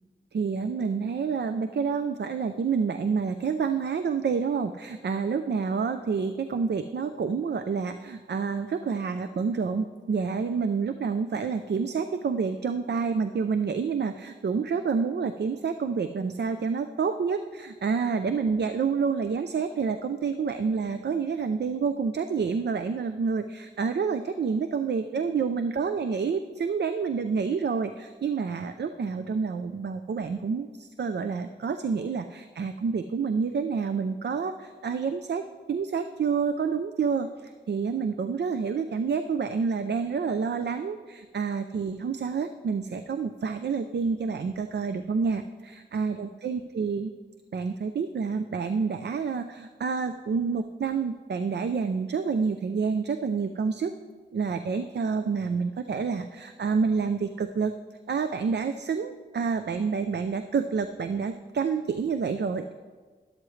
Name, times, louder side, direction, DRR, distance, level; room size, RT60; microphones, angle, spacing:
voice 1, 0.3-47.1 47.5-53.9 54.3-57.7 58.1-62.7, right 5 dB, 70° right, 9 dB, 0.5 m, -28 dB
12.5 x 11.5 x 3.2 m, 1.5 s
wide cardioid pair, 75°, 18 cm